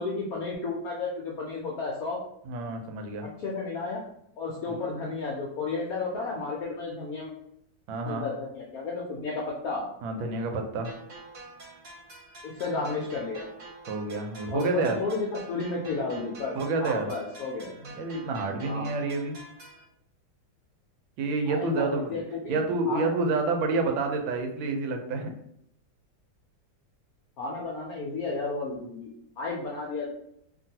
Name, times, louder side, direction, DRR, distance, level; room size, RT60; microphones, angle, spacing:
voice 1, 0.0-2.2 3.4-4.0 4.4-7.3 8.0-9.9 12.4-13.5 14.5-16.5 16.8-17.7 18.7-18.9 21.5-23.1 27.4-29.1 29.4-30.1, left 3 dB, 75° left, -3 dB, 0.8 m, -32 dB
voice 2, 2.5-3.3 4.7-4.8 7.9-8.3 10.0-10.9 13.9-15.0 16.5-17.1 17.8-19.4 21.2-22.2 22.5-25.3, right 3 dB, 90° right, 4 dB, 1.4 m, -28 dB
sound 1, 10.8-19.8, right 2 dB, 50° right, 1.0 m, -47 dB
2.9 x 2.6 x 2.7 m, 0.74 s
omnidirectional pair, 2.1 m